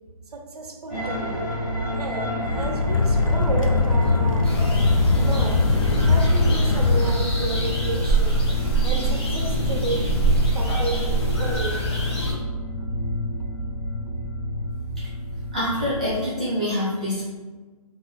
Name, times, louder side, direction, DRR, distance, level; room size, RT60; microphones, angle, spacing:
voice 1, 0.3-1.4 2.0-4.5 5.1-5.6 6.0-8.4 8.8-11.9 12.8-12.9 13.4-13.5, right 2 dB, 75° right, 2 dB, 0.6 m, -31 dB
sound 1, 0.9-16.2, equal, 10° left, 0.8 m, -29 dB
sound 2, 2.4-7.1, left 3 dB, 60° left, 0.4 m, -20 dB
sound 3, 4.4-12.3, right 2 dB, 40° left, 0.8 m, -25 dB
voice 2, 15.5-17.2, left 1 dB, 10° right, -12 dB, 0.4 m, -25 dB
2.5 x 2.2 x 3.5 m, 1.3 s
hypercardioid pair, 170°, 20 cm